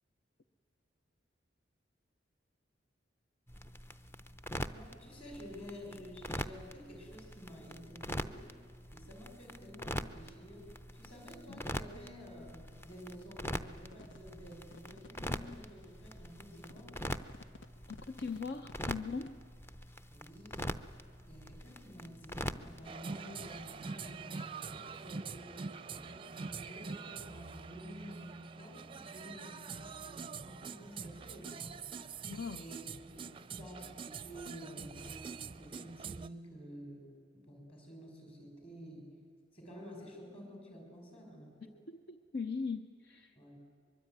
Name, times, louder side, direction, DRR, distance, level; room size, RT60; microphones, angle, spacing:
sound 1, 3.5-22.9, equal, 15° left, 0.6 m, -44 dB
voice 1, 4.7-8.5 8.9-17.0 20.1-20.8 21.3-31.8 32.6-32.8 33.1-35.1 35.6-39.1 39.5-41.8 43.4-43.6, equal, 30° left, 2 dB, 6.1 m, -51 dB
sound 2, 11.9-19.3, left 3 dB, 80° left, 1.1 m, -56 dB
voice 2, 17.9-19.4 32.3-32.7 41.6-43.4, left 4 dB, 60° left, 8 dB, 0.8 m, -40 dB
sound 3, 22.8-36.3, right 5 dB, 30° right, 0.5 m, -45 dB
23.5 x 23.0 x 9.5 m, 2.2 s
head